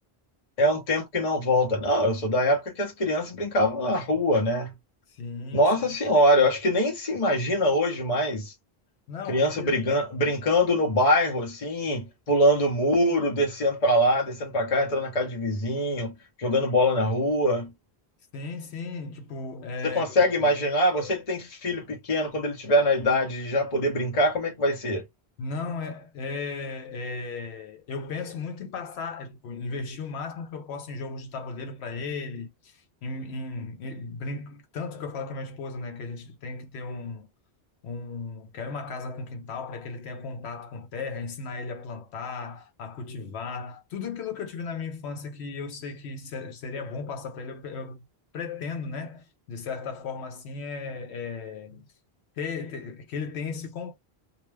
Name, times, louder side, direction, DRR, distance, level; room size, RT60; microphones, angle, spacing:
voice 1, 0.6-4.7 5.5-8.5 9.3-17.7 19.8-25.1, equal, 40° left, 0.7 m, -24 dB
voice 2, 5.1-5.7 9.1-9.8 18.3-20.5 25.4-37.3 37.8-48.0 48.3-51.9 52.4-53.9, left 4 dB, 85° left, 0.9 m, -36 dB
2.4 x 2.1 x 3.2 m
omnidirectional pair, 1.1 m